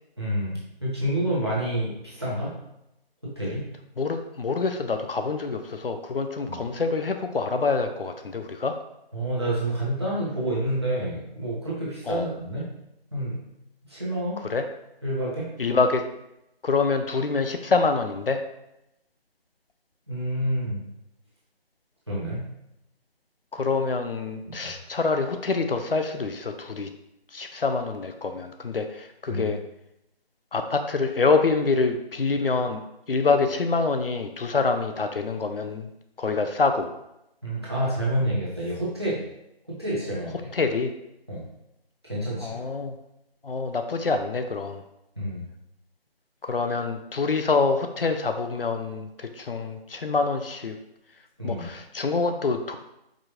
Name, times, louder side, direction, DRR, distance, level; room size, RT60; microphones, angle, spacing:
voice 1, 0.2-2.5 3.2-3.7 6.5-6.6 9.1-12.7 13.1-13.4 13.8-14.4 15.0-15.5 20.1-20.8 22.1-22.4 24.5-24.7 29.3-29.5 37.4-39.2 39.7-40.5 41.3-41.5 42.0-42.6 45.2-45.4 51.4-51.6, right 1 dB, 25° right, -7 dB, 0.9 m, -28 dB
voice 2, 4.0-8.8 12.1-12.3 14.5-14.6 15.6-16.0 16.6-18.4 23.5-26.9 27.3-29.6 30.5-32.8 33.1-35.9 36.2-36.9 40.5-40.9 42.4-42.9 43.4-44.8 46.4-50.8 51.4-52.8, left 4 dB, 65° left, 6 dB, 0.4 m, -26 dB
4.8 x 2.4 x 2.9 m, 0.84 s
figure-of-eight pair, 180°, 31 cm